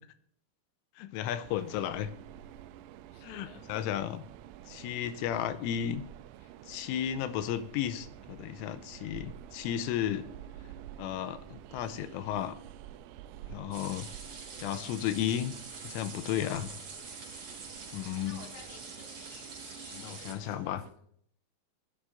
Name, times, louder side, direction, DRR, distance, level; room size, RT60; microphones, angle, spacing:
voice 1, 1.0-2.1 3.2-4.2 4.7-6.0 6.7-10.3 11.0-12.6 13.5-14.1 14.6-15.5 15.8-16.7 17.9-18.4 19.9-20.8, left 10 dB, 85° left, 11 dB, 3.1 m, -34 dB
Train, 1.4-20.9, right 12 dB, 85° right, 2.7 m, -49 dB
voice 2, 3.1-3.6 18.2-21.0, left 7 dB, 60° left, 1 dB, 2.8 m, -54 dB
sound 1, 13.7-20.3, right 4 dB, 40° right, 4.5 m, -46 dB
18.5 x 11.5 x 2.6 m, 0.64 s
omnidirectional pair, 5.7 m